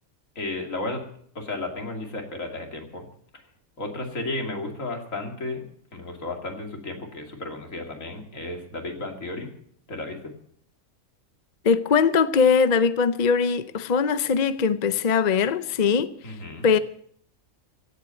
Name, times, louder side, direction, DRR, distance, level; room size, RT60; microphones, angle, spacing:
voice 1, 0.4-1.0 1.3-3.1 3.8-5.6 5.9-9.5 9.9-10.2 16.2-16.7, left 2 dB, 65° left, 2.9 m, -33 dB
voice 2, 11.6-16.1 16.6-16.8, left 6 dB, 45° left, 0.5 m, -21 dB
16.0 x 8.3 x 9.0 m
omnidirectional pair, 1.5 m